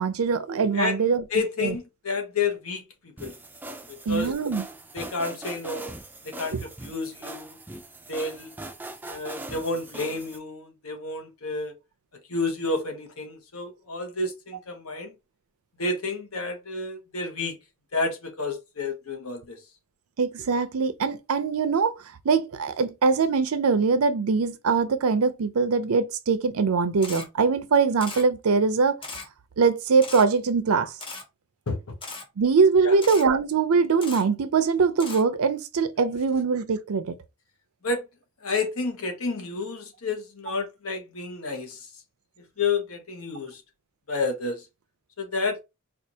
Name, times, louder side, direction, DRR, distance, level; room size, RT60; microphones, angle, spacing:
voice 1, 0.0-1.2 1.6-1.8 4.1-4.6 6.5-6.6 20.2-21.9 22.2-29.0 29.6-31.0 32.4-37.1, right 5 dB, 90° right, 0.5 m, -22 dB
voice 2, 1.3-2.8 3.2-3.3 4.1-4.3 4.9-6.0 6.2-6.5 6.8-7.6 8.1-8.5 9.0-11.7 12.3-15.1 15.8-17.6 17.9-19.6 31.7-31.8 32.8-32.9 37.8-38.0 38.4-41.9 42.6-43.6 44.1-44.6 45.2-45.6, left 3 dB, 85° left, 1.0 m, -30 dB
sound 1, 3.2-10.4, right 2 dB, 10° right, 0.3 m, -41 dB
Camera, 27.0-27.3 28.0-28.2 29.0-29.3 30.0-30.2 31.0-31.2 32.0-32.2 33.0-33.2 34.0-34.2 35.0-35.2, left 3 dB, 25° left, 0.8 m, -37 dB
4.4 x 2.4 x 2.7 m
head